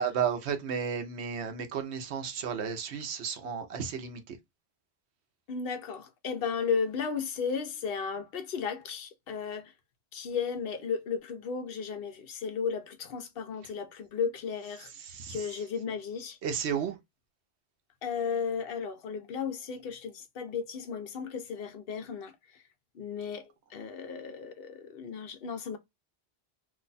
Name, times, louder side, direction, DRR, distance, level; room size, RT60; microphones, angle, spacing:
voice 1, 0.0-4.4 15.0-15.5 16.4-17.0, right 7 dB, 90° right, 1.0 m, -33 dB
voice 2, 5.5-9.7 10.1-14.9 15.3-16.4 18.0-22.3 22.9-25.8, left 6 dB, 65° left, 0.8 m, -34 dB
2.7 x 2.2 x 3.9 m
omnidirectional pair, 1.1 m